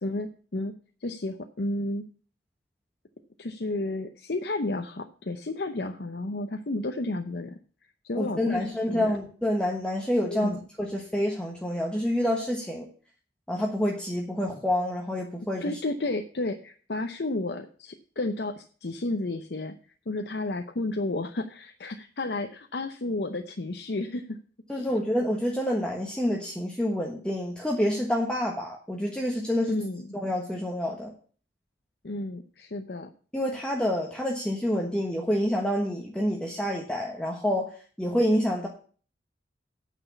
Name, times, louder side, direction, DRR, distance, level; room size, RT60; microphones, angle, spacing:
voice 1, 0.0-0.7 1.0-2.1 3.4-7.6 8.0-9.1 10.2-10.6 15.6-19.7 20.1-24.4 24.7-25.0 29.7-30.1 32.0-33.1, left 2 dB, 65° left, 5 dB, 0.7 m, -32 dB
voice 2, 8.1-12.9 13.5-15.8 24.7-29.8 30.2-31.1 33.3-37.7 38.0-38.7, equal, 5° left, -1 dB, 1.3 m, -28 dB
9.0 x 6.1 x 8.2 m, 0.42 s
head